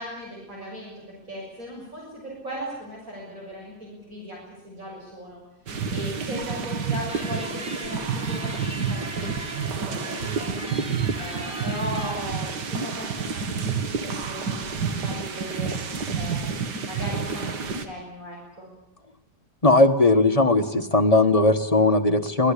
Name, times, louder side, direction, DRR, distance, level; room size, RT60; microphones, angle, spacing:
voice 1, 0.0-5.4 5.7-10.6 11.2-15.8 16.1-18.7, equal, 55° right, -3 dB, 7.3 m, -38 dB
sound 1, 5.7-17.8, right 5 dB, 85° right, 2.2 m, -29 dB
sound 2, 7.1-12.4, equal, 5° right, 2.7 m, -39 dB
voice 2, 19.6-22.5, left 2 dB, 25° left, 7 dB, 1.4 m, -18 dB
24.5 x 17.5 x 10.0 m, 0.88 s
omnidirectional pair, 1.8 m